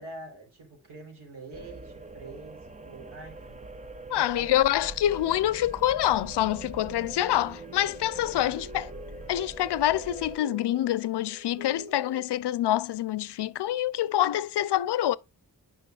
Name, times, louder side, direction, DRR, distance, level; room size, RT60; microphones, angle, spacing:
voice 1, 0.0-3.7 4.1-4.5 8.1-8.9, right 2 dB, 80° right, 3.8 m, -46 dB
sound 1, 1.5-10.4, right 3 dB, 20° right, 0.5 m, -43 dB
voice 2, 4.1-8.9 9.3-15.2, left 13 dB, 80° left, 0.5 m, -26 dB
sound 2, 7.2-12.2, equal, 5° left, 4.3 m, -47 dB
9.0 x 5.5 x 2.4 m
wide cardioid pair, 160°, 40 cm